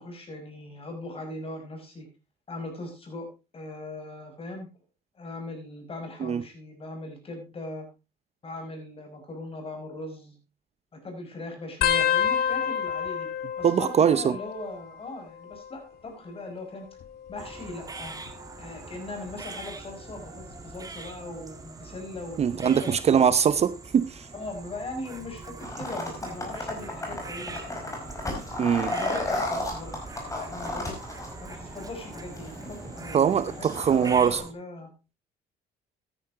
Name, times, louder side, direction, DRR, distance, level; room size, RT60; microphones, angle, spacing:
voice 1, 0.0-2.1 2.5-4.7 5.2-7.9 8.4-10.4 11.0-13.3 13.6-16.9 17.3-18.1 18.6-23.2 24.3-28.4 28.9-31.0 31.4-34.9, left 2 dB, 35° left, 5.6 m, -40 dB
sound 1, 11.8-15.0 15.3-15.9 16.9-18.3 19.0-19.3 20.5-20.9 22.4-22.5, left 9 dB, 65° left, 2.0 m, -29 dB
voice 2, 13.6-14.4 22.4-24.3 28.6-28.9 33.1-34.4, right 8 dB, 40° right, 0.6 m, -22 dB
sound 2, 17.4-34.5, right 3 dB, 20° right, 2.0 m, -42 dB
sound 3, 25.6-34.4, left 2 dB, 20° left, 4.9 m, -35 dB
13.0 x 10.0 x 3.7 m
cardioid pair, 110°, 17 cm